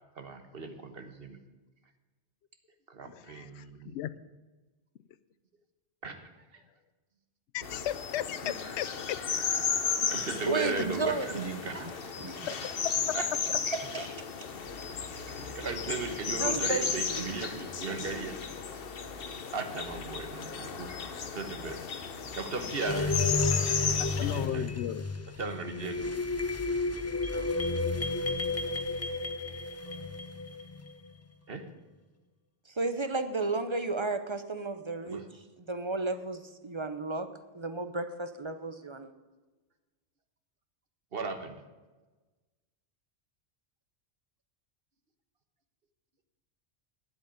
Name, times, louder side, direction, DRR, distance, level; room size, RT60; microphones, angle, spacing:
voice 1, 0.2-1.4 2.9-4.0 6.0-6.6 8.4-8.5 10.1-12.0 13.1-13.3 15.3-18.4 19.5-20.9 21.3-21.8 22.3-23.2 24.2-24.8 25.4-26.1 31.5-31.6 35.0-35.2 41.1-41.6, right 3 dB, 60° right, 8 dB, 1.4 m, -37 dB
voice 2, 3.3-4.1 7.5-9.2 12.5-13.2 24.0-25.1, left 12 dB, 80° left, 16 dB, 0.9 m, -36 dB
sound 1, 7.6-24.5, left 6 dB, 60° left, 1.1 m, -34 dB
voice 3, 10.1-11.4 11.8-11.9 12.2-12.5 13.7-14.3 16.3-17.3 27.3-27.5 32.7-35.3 35.7-37.3 37.5-39.1, right 3 dB, 30° right, 10 dB, 0.7 m, -33 dB
sound 2, 22.9-30.9, left 3 dB, 20° left, 0.4 m, -32 dB
10.0 x 7.9 x 9.1 m, 1.2 s
omnidirectional pair, 1.1 m